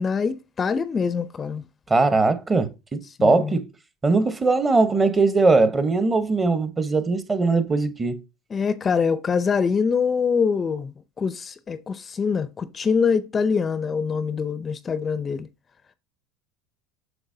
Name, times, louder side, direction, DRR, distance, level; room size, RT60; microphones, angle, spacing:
voice 1, 0.0-1.6 3.2-3.6 8.5-15.5, left 5 dB, 25° left, 0.5 m, -24 dB
voice 2, 1.9-3.7 4.0-8.2, right 3 dB, 20° right, 1.0 m, -20 dB
7.9 x 5.8 x 2.7 m
supercardioid pair, 115°, 0 cm